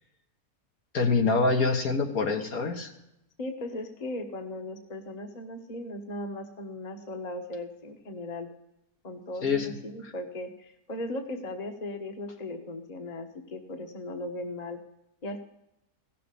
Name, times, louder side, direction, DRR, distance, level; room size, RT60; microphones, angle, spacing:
voice 1, 0.9-2.9 9.4-9.7 10.0-10.1, left 4 dB, 70° left, 3 dB, 2.0 m, -25 dB
voice 2, 3.4-8.5 9.0-14.8 15.2-15.4, left 1 dB, 30° left, 5 dB, 1.3 m, -37 dB
16.0 x 6.8 x 8.4 m, 0.86 s
omnidirectional pair, 1.6 m